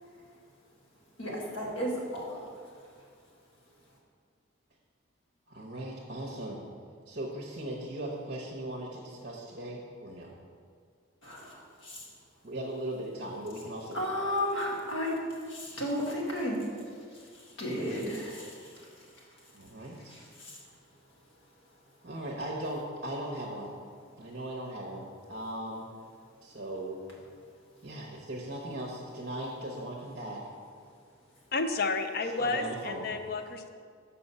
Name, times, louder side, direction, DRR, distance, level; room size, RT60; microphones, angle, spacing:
voice 1, 1.2-2.5 11.2-12.0 13.9-16.7 17.1-18.9 20.1-20.6, equal, 70° left, -2 dB, 1.6 m, -34 dB
voice 2, 5.5-6.6 7.1-10.4 12.4-14.3 19.5-20.2 22.0-23.8 24.2-25.9 26.4-27.0 27.8-30.4 32.4-33.1, right 1 dB, 45° right, -3 dB, 0.8 m, -38 dB
voice 3, 31.5-33.7, left 3 dB, 50° left, 8 dB, 0.5 m, -31 dB
7.0 x 5.6 x 5.4 m, 2.1 s
head